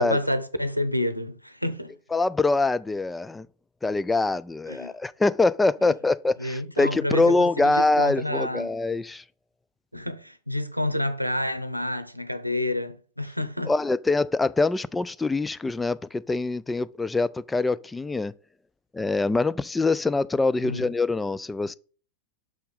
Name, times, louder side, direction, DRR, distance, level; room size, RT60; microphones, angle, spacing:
voice 1, 0.0-1.9 4.7-4.9 6.4-8.7 9.9-13.7 20.6-20.8, left 1 dB, 90° right, 0.7 m, -29 dB
voice 2, 2.1-3.5 3.8-9.2 13.7-18.3 18.9-21.7, left 3 dB, 10° left, 0.3 m, -24 dB
6.2 x 4.5 x 5.2 m
figure-of-eight pair, 90°, 0 cm